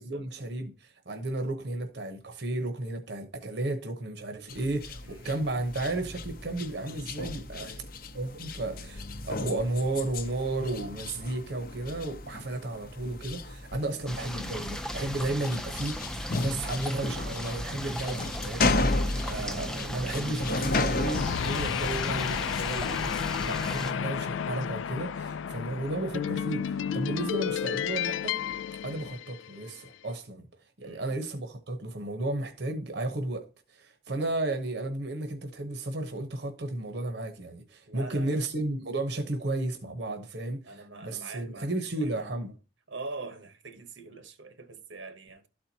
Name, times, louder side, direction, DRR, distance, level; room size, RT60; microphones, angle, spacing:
voice 1, 0.0-7.7 8.1-18.7 19.2-23.1 23.4-28.4 28.8-30.5 30.8-42.5, right 2 dB, 65° right, 0.9 m, -33 dB
sound 1, 4.5-23.3, left 2 dB, 50° left, 0.6 m, -34 dB
voice 2, 5.0-5.4 7.5-7.9 18.1-18.2 18.7-19.3 30.8-31.1 37.9-38.5 40.6-42.3 42.9-45.5, right 3 dB, 85° right, 1.2 m, -44 dB
sound 2, 14.1-23.9, equal, 5° left, 0.5 m, -36 dB
sound 3, 21.1-29.7, left 8 dB, 85° left, 0.4 m, -32 dB
12.5 x 4.4 x 2.8 m
head